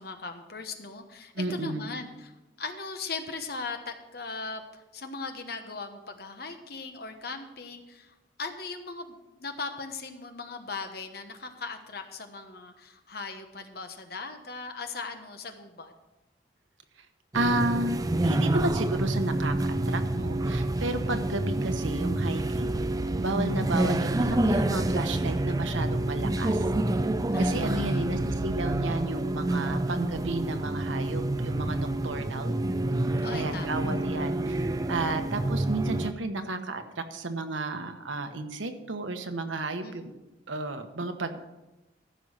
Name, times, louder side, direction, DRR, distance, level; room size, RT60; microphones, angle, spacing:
voice 1, 0.0-2.3 2.6-15.9 20.7-21.0 27.3-28.1 31.9-32.5 33.2-33.8 39.8-40.2, left 4 dB, 55° left, 6 dB, 1.1 m, -39 dB
voice 2, 1.3-1.9 17.0-17.1 17.3-22.8 23.2-26.6 27.4-32.5 33.3-34.6 34.9-40.0 40.5-41.4, right 2 dB, 90° right, 7 dB, 1.1 m, -32 dB
sound 1, 17.3-36.1, right 1 dB, 20° right, 0.4 m, -28 dB
14.5 x 5.6 x 6.4 m, 1.0 s
head